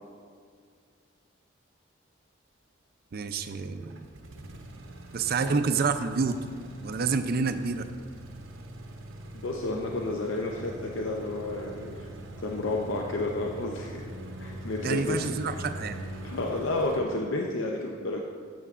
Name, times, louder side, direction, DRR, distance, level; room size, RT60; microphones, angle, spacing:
voice 1, 3.1-4.0 5.1-6.4 6.8-7.9 14.8-16.0, right 4 dB, 50° right, 9 dB, 0.4 m, -28 dB
sound 1, 3.5-17.0, right 1 dB, 70° right, 0.8 m, -43 dB
voice 2, 9.3-12.1 12.4-14.0 14.4-15.6 16.2-18.2, left 2 dB, 65° left, 0 dB, 0.6 m, -31 dB
12.0 x 6.9 x 2.4 m, 2.2 s
head